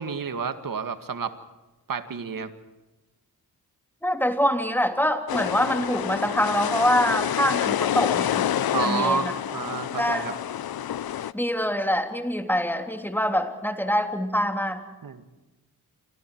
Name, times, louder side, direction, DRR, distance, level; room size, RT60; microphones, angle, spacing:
voice 1, 0.0-1.4 1.9-2.5 8.7-10.3 15.0-15.2, right 5 dB, 60° right, 9 dB, 2.0 m, -29 dB
voice 2, 4.0-8.5 8.8-9.3 10.0-10.2 11.3-14.8, equal, 5° left, 5 dB, 3.2 m, -25 dB
sound 1, 5.3-11.3, left 10 dB, 70° left, 0.8 m, -28 dB
27.5 x 24.5 x 4.7 m, 1.1 s
cardioid pair, 65°, 37 cm